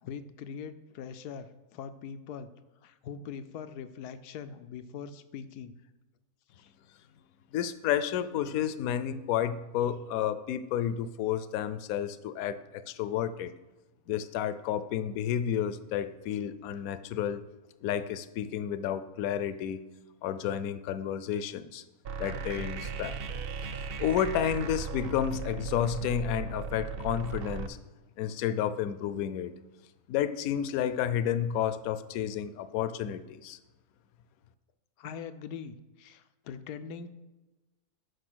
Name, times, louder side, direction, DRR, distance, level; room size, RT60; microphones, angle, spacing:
voice 1, 0.0-2.5 2.8-5.7 6.5-6.7 16.4-16.5 16.8-16.9 35.0-37.1, left 7 dB, 90° left, 11 dB, 1.2 m, -42 dB
voice 2, 7.5-13.5 14.1-17.4 17.8-19.9 20.2-21.8 22.2-23.2 24.0-27.8 28.2-29.5 30.1-33.6, left 9 dB, 70° left, 13 dB, 1.0 m, -31 dB
sound 1, 22.0-27.7, right 5 dB, 65° right, 0.5 m, -37 dB
9.9 x 5.5 x 6.1 m, 1.1 s
omnidirectional pair, 1.6 m